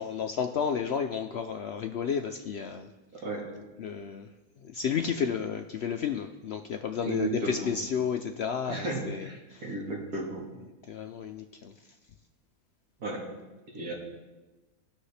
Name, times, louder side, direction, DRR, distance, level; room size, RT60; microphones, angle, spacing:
voice 1, 0.0-2.9 3.8-4.3 4.6-9.7 10.9-11.7, left 7 dB, 70° left, 6 dB, 0.6 m, -32 dB
voice 2, 7.0-7.7 8.7-10.4 13.0-13.2 13.7-13.9, right 2 dB, 80° right, -4 dB, 2.3 m, -34 dB
17.5 x 6.3 x 3.3 m, 1.1 s
omnidirectional pair, 1.6 m